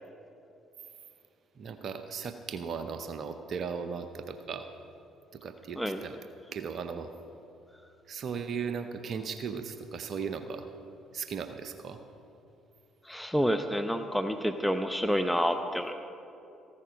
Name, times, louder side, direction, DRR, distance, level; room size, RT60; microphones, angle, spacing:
voice 1, 1.6-4.7 5.3-6.2 6.5-7.1 8.1-10.7 11.1-12.0, right 6 dB, 55° right, 8 dB, 0.7 m, -37 dB
voice 2, 13.1-15.9, equal, 5° left, 7 dB, 0.7 m, -28 dB
15.0 x 13.0 x 5.2 m, 2.9 s
hypercardioid pair, 50°, 0 cm